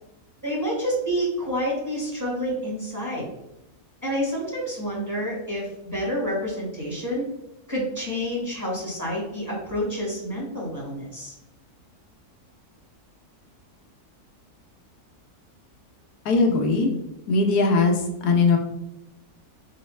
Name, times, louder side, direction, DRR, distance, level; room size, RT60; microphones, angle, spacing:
voice 1, 0.4-3.3 4.0-7.3 7.7-11.3, equal, 10° right, -4 dB, 1.4 m, -28 dB
voice 2, 16.3-16.9 17.3-18.0 18.2-18.6, left 3 dB, 80° left, 2 dB, 1.2 m, -19 dB
4.0 x 3.8 x 3.2 m, 0.87 s
omnidirectional pair, 1.7 m